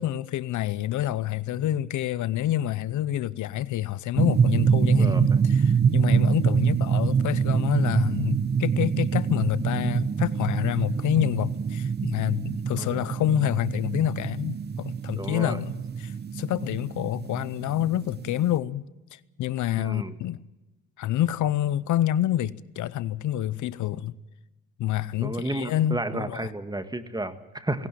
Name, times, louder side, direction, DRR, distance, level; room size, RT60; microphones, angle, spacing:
voice 1, 0.0-18.9 19.1-20.4 21.0-24.1 24.8-26.5, left 12 dB, 75° left, 0.8 m, -27 dB
sound 1, 4.2-18.6, right 6 dB, 35° right, 0.8 m, -25 dB
voice 2, 15.2-15.6 19.8-20.2 25.2-27.9, right 2 dB, 15° right, 1.8 m, -32 dB
18.5 x 17.5 x 9.1 m
cardioid pair, 90°, 30 cm